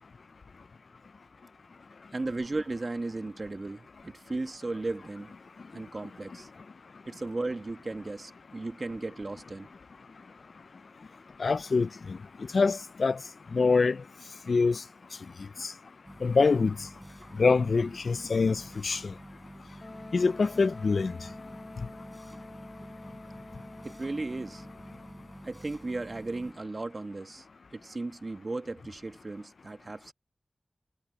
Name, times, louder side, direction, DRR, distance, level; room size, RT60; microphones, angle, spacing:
voice 1, 2.1-5.3 5.7-6.5 7.0-9.7 22.8-22.9 23.8-24.6 25.4-27.5 27.7-30.1, right 2 dB, 60° right, 1.5 m, -36 dB
voice 2, 11.4-12.2 12.5-13.2 13.5-14.0 14.5-14.8 15.6-15.7 16.2-16.7 17.4-19.0 20.1-21.1, left 4 dB, 90° left, 0.3 m, -25 dB
sound 1, 16.0-26.5, right 1 dB, 15° right, 6.2 m, -49 dB
Wind instrument woodwind instrument, 19.8-25.4, left 2 dB, 55° left, 0.7 m, -47 dB
cardioid pair, 40°, 0 cm